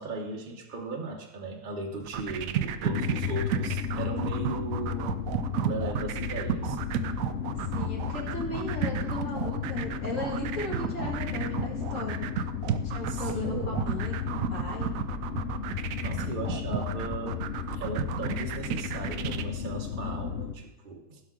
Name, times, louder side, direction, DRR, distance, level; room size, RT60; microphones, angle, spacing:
voice 1, 0.0-5.2 5.6-6.8 13.1-13.8 16.0-17.4 17.7-21.2, right 2 dB, 40° right, 0 dB, 0.8 m, -37 dB
sound 1, 2.0-19.4, right 10 dB, 70° right, 0.8 m, -32 dB
sound 2, 2.8-20.5, left 8 dB, 70° left, 0.6 m, -34 dB
voice 2, 7.7-12.3 12.8-14.9, left 1 dB, 45° left, -2 dB, 2.3 m, -36 dB
16.0 x 5.6 x 3.7 m, 0.96 s
omnidirectional pair, 1.9 m